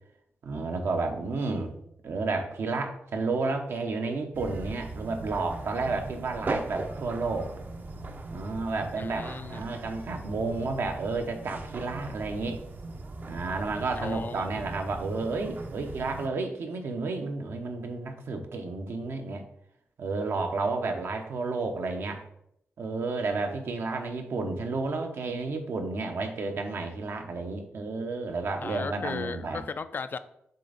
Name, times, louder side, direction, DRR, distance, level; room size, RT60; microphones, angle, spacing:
voice 1, 0.4-1.7 2.0-7.5 8.3-12.6 13.3-19.4 20.0-22.2 22.8-29.6, right 3 dB, 70° right, 4 dB, 0.9 m, -31 dB
sound 1, 4.3-16.3, right 2 dB, 45° right, 0.7 m, -39 dB
voice 2, 9.0-9.6 14.0-14.6 28.6-30.2, left 5 dB, 50° left, 11 dB, 0.4 m, -36 dB
6.7 x 3.4 x 4.0 m, 0.75 s
cardioid pair, 75°, 4 cm